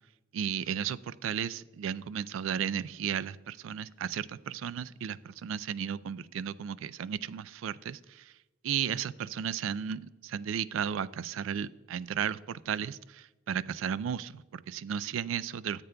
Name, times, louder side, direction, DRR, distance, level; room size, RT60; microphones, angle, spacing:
voice 1, 0.3-8.3 8.6-15.8, right 8 dB, 85° right, 18 dB, 0.3 m, -34 dB
13.5 x 8.1 x 2.3 m, 1.1 s
head